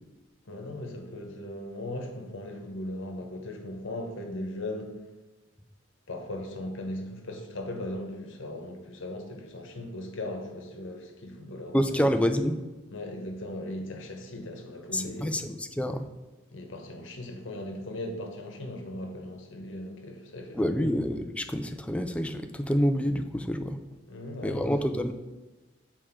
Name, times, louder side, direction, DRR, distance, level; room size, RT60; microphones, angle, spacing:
voice 1, 0.5-5.1 6.1-12.1 12.9-15.4 16.5-21.0 23.7-23.8 24.1-24.7, left 1 dB, 65° left, 1.1 m, -38 dB
voice 2, 11.7-12.6 14.9-16.1 20.5-23.8 24.4-25.1, equal, 5° left, 0.4 m, -27 dB
5.9 x 4.5 x 4.6 m
head